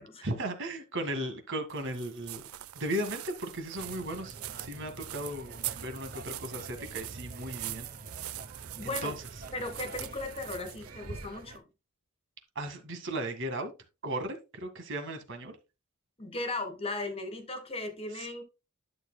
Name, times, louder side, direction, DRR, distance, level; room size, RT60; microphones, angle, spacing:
voice 1, 0.2-2.4 2.8-7.9 8.8-9.3 12.6-13.7 14.0-15.6 18.1-18.3, right 1 dB, 60° right, 1.9 m, -36 dB
sound 1, 1.7-11.6, right 14 dB, 75° right, 0.5 m, -43 dB
sound 2, 3.7-11.6, right 2 dB, 40° right, 0.8 m, -47 dB
voice 2, 8.7-9.1 9.5-11.7 16.2-18.4, left 2 dB, 25° left, 1.7 m, -37 dB
11.5 x 6.9 x 2.2 m
head